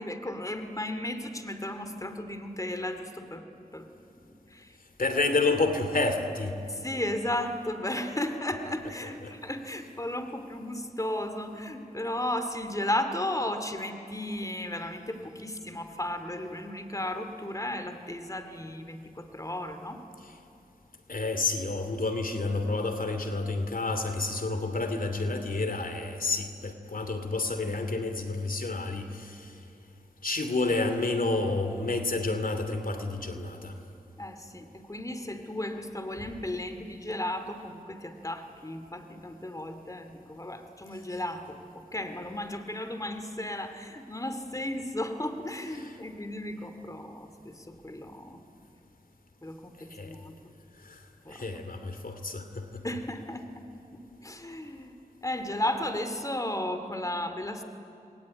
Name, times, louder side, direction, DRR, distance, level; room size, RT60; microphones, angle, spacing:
voice 1, 0.0-3.4 3.7-3.9 4.3-4.8 6.7-20.0 34.2-48.4 49.4-50.3 51.2-51.4 52.8-53.7 53.9-57.6, left 1 dB, 20° left, 8 dB, 2.5 m, -35 dB
voice 2, 5.0-6.6 9.0-9.3 20.2-20.3 21.1-29.6 30.2-33.8 45.8-45.9 49.9-50.2 50.8-52.8, left 3 dB, 65° left, 7 dB, 2.7 m, -30 dB
27.5 x 21.5 x 9.8 m, 2.8 s
wide cardioid pair, 45°, 15 cm